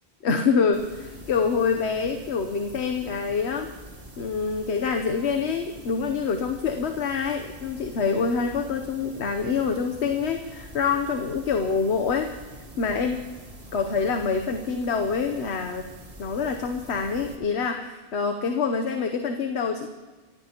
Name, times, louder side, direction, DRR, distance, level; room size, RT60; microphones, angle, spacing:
voice 1, 0.2-3.7 4.2-12.3 12.8-13.3 13.7-15.9 16.2-19.9, left 5 dB, 90° left, 5 dB, 1.1 m, -26 dB
sound 1, 0.7-17.4, right 1 dB, 75° right, 2.4 m, -45 dB
26.0 x 15.0 x 2.9 m, 1.4 s
omnidirectional pair, 1.1 m